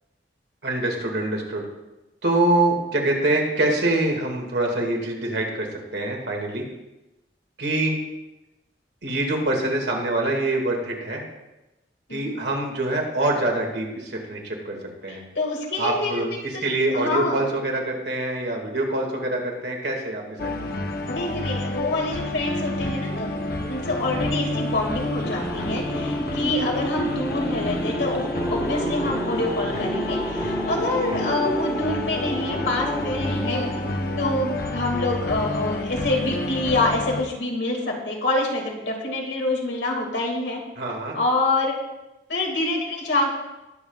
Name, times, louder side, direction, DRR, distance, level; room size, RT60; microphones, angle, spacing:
voice 1, 0.6-1.7 2.2-6.7 7.6-8.0 9.0-11.2 12.1-14.8 15.0-15.2 15.8-16.3 16.6-20.9 40.8-41.2, right 2 dB, 70° right, 0 dB, 2.1 m, -25 dB
voice 2, 12.1-12.4 15.1-16.2 16.5-16.7 16.9-17.4 21.1-33.7 34.2-40.6 41.1-41.7 42.3-43.4, left 2 dB, 85° left, 0 dB, 2.3 m, -26 dB
sound 1, 20.4-37.2, left 2 dB, 60° left, 0.9 m, -29 dB
sound 2, 23.9-35.0, right 1 dB, 10° right, 0.4 m, -32 dB
19.5 x 7.1 x 2.4 m, 1.0 s
head